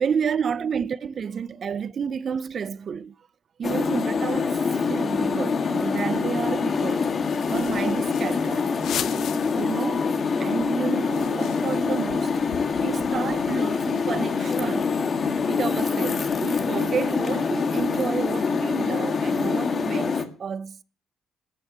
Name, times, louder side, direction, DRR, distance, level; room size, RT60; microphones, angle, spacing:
voice 1, 0.0-3.1 3.6-7.1 7.5-8.7 9.1-10.0 10.4-12.4 12.8-14.9 15.5-20.8, right 7 dB, 50° right, 0.8 m, -30 dB
sound 1, 3.6-20.2, left 5 dB, 45° left, 1.9 m, -25 dB
sound 2, 7.1-9.8 10.2-10.3 10.5-13.7, left 10 dB, 75° left, 1.1 m, -38 dB
13.5 x 6.4 x 9.5 m
cardioid pair, 90°, 0 cm